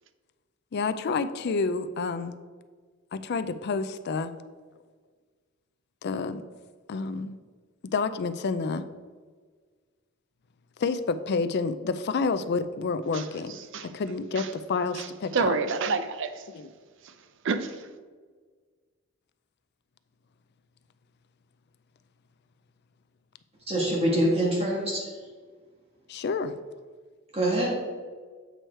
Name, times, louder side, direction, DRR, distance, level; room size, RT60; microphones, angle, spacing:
voice 1, 0.7-2.4 3.1-4.3 6.0-6.4 6.9-7.4 7.8-8.9 10.8-13.6 13.8-15.5 16.5-16.6 26.1-26.6, left 4 dB, 55° left, 11 dB, 0.4 m, -29 dB
voice 2, 13.1-14.0 14.3-14.5 14.9-16.5 17.0-17.9, right 4 dB, 65° right, 10 dB, 0.6 m, -30 dB
voice 3, 23.7-25.1 27.3-27.7, right 1 dB, 30° right, -3 dB, 1.5 m, -25 dB
8.0 x 4.6 x 4.5 m, 1.5 s
head